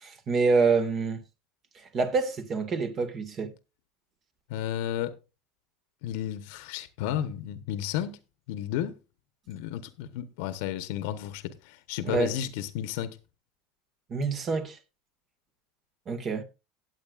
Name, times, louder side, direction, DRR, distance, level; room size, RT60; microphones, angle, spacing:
voice 1, 0.0-1.2 1.8-3.5 12.0-12.3 14.1-14.8 16.1-16.4, right 4 dB, 35° right, 1.8 m, -27 dB
voice 2, 4.5-5.1 6.0-8.2 8.5-9.0 9.5-13.2, left 11 dB, 70° left, 1.0 m, -32 dB
17.5 x 8.0 x 2.5 m
supercardioid pair, 125°, 0 cm